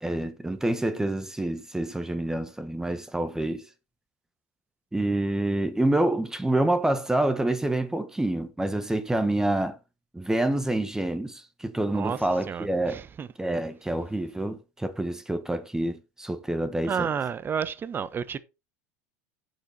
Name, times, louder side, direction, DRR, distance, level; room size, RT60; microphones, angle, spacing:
voice 1, 0.0-3.7 4.9-9.8 10.1-13.0 13.4-17.1, right 1 dB, 5° right, 1.5 m, -27 dB
voice 2, 12.5-13.3 16.8-18.4, right 7 dB, 30° right, 1.1 m, -31 dB
9.2 x 7.6 x 4.2 m
supercardioid pair, 100°, 8 cm